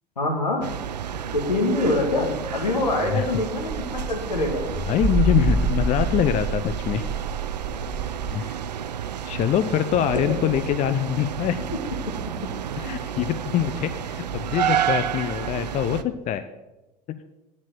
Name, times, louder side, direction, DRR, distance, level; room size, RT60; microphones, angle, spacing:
voice 1, 0.2-0.7 1.3-4.6, left 2 dB, 85° left, 2 dB, 2.0 m, -24 dB
sound 1, 0.6-16.0, right 9 dB, 80° right, 0.5 m, -31 dB
sound 2, 3.7-8.3, right 4 dB, 25° right, 2.0 m, -27 dB
voice 2, 4.8-7.1 8.3-8.6 9.3-11.7 12.8-16.4, left 10 dB, 35° left, 11 dB, 0.6 m, -24 dB
9.6 x 7.5 x 6.3 m, 1.0 s
figure-of-eight pair, 75°, 21 cm